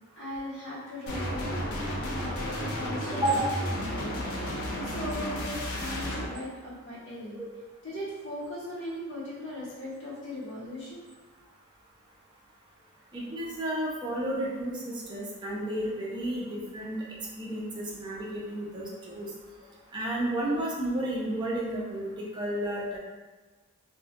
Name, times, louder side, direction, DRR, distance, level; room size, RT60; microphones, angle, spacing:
voice 1, 0.2-3.4 3.7-7.4 7.8-11.1 19.6-19.7, left 1 dB, 55° left, -9 dB, 1.0 m, -39 dB
sound 1, 1.1-6.3, equal, 80° left, 0.5 m, -32 dB
voice 2, 13.1-17.0 17.4-19.3 19.9-23.0, right 1 dB, 20° right, -5 dB, 0.5 m, -32 dB
2.3 x 2.2 x 3.6 m, 1.3 s
head